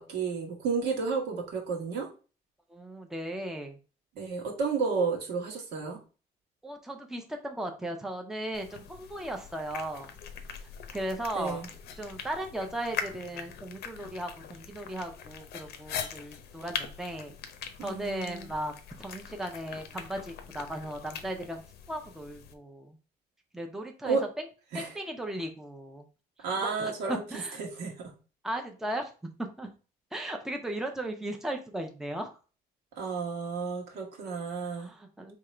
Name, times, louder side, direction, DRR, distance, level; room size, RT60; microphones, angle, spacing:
voice 1, 0.0-2.1 4.1-6.0 11.3-11.7 17.8-18.5 24.0-24.2 24.7-24.9 26.4-28.1 32.9-34.9, right 5 dB, 80° right, 1 dB, 1.4 m, -32 dB
voice 2, 2.7-3.8 6.6-10.1 10.9-11.7 12.0-17.4 17.8-18.7 19.0-21.6 21.9-23.0 23.5-24.2 24.7-26.1 26.4-27.6 28.4-29.7 30.1-32.3 34.6-35.4, right 1 dB, 5° right, 3 dB, 0.7 m, -36 dB
sound 1, 8.5-22.5, left 7 dB, 70° left, 0.7 m, -42 dB
3.7 x 2.9 x 4.3 m, 0.35 s
cardioid pair, 110°, 17 cm